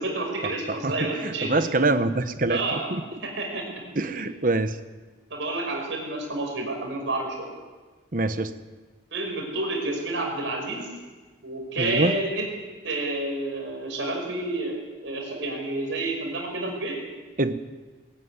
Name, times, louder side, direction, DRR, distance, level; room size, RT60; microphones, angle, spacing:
voice 1, 0.0-1.5 2.5-2.9 3.2-3.8 4.2-4.3 5.3-7.5 9.1-10.9 11.4-12.5 12.8-14.8 15.0-17.0, right 2 dB, 75° right, 1 dB, 5.8 m, -29 dB
voice 2, 1.2-3.0 4.0-4.8 8.1-8.5 11.8-12.2 17.4-17.5, right 2 dB, 45° right, 10 dB, 1.0 m, -24 dB
21.0 x 13.5 x 9.7 m, 1.4 s
head